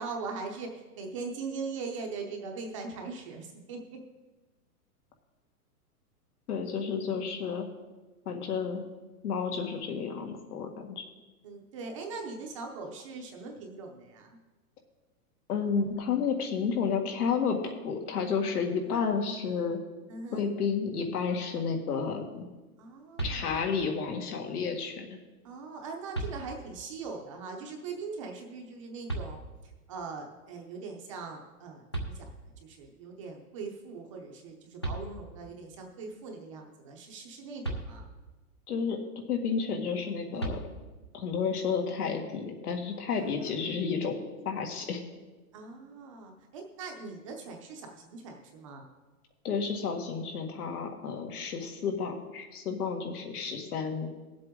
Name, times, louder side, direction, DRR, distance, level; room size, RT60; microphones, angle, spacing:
voice 1, 0.0-4.0 11.4-14.4 18.8-19.1 20.1-20.4 22.8-23.7 25.4-29.4 29.9-38.1 40.3-40.7 43.1-43.8 45.5-48.8, right 4 dB, 20° right, 2 dB, 0.7 m, -41 dB
voice 2, 6.5-7.7 8.3-8.8 9.2-11.0 15.5-19.8 20.3-22.4 23.2-25.2 38.7-39.0 39.3-40.6 41.1-45.0 49.4-54.1, left 6 dB, 80° left, 3 dB, 2.1 m, -31 dB
sound 1, 23.2-23.9 25.4-25.5 26.1-26.9 29.1-29.8 31.6-31.7 31.9-32.8 34.5-34.6 34.8-35.6 37.6-38.4 40.4-41.2, right 2 dB, 20° left, 0.3 m, -37 dB
18.0 x 7.6 x 3.7 m, 1.2 s
hypercardioid pair, 170°, 45 cm